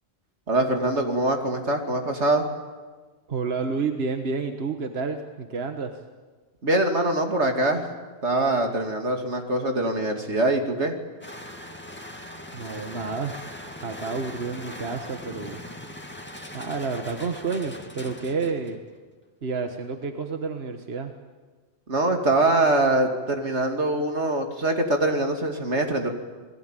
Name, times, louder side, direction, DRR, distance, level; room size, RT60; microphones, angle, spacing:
voice 1, 0.5-2.5 6.6-7.9 8.2-10.9 21.9-26.1, right 2 dB, 85° right, 4 dB, 2.9 m, -23 dB
voice 2, 3.3-5.9 12.5-13.3 13.8-15.6 16.5-18.8 19.4-21.1, right 4 dB, 65° right, 5 dB, 1.7 m, -30 dB
sound 1, 11.2-18.9, left 1 dB, 10° left, 2.2 m, -40 dB
28.5 x 20.5 x 9.1 m, 1.4 s
omnidirectional pair, 1.1 m